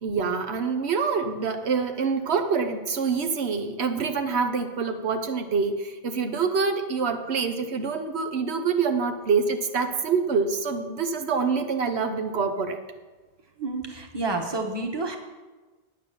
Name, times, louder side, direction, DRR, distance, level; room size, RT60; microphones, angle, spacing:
voice 1, 0.0-12.8, right 5 dB, 90° right, 6 dB, 1.2 m, -26 dB
voice 2, 13.6-15.2, right 3 dB, 25° right, 2 dB, 1.2 m, -29 dB
9.6 x 8.0 x 6.8 m, 1.2 s
omnidirectional pair, 1.1 m